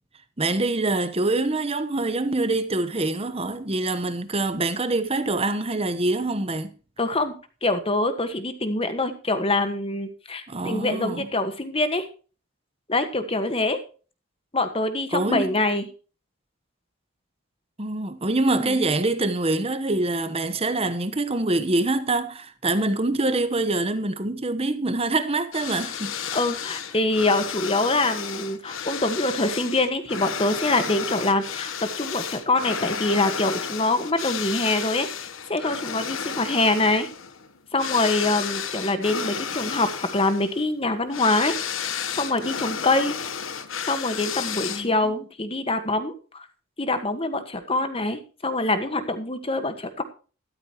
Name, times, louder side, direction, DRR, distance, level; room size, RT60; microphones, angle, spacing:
voice 1, 0.4-6.7 10.5-11.3 15.1-15.5 17.8-26.1 44.7-45.2, right 2 dB, 30° right, 1.1 m, -25 dB
voice 2, 7.0-7.3 7.6-12.1 12.9-13.8 14.5-15.9 18.5-18.8 26.3-37.1 37.7-41.6 42.2-43.1 43.9-46.5 46.8-50.0, left 2 dB, 25° left, 1.5 m, -25 dB
sound 1, 25.5-45.1, left 7 dB, 70° left, 1.2 m, -32 dB
13.5 x 13.0 x 3.0 m
head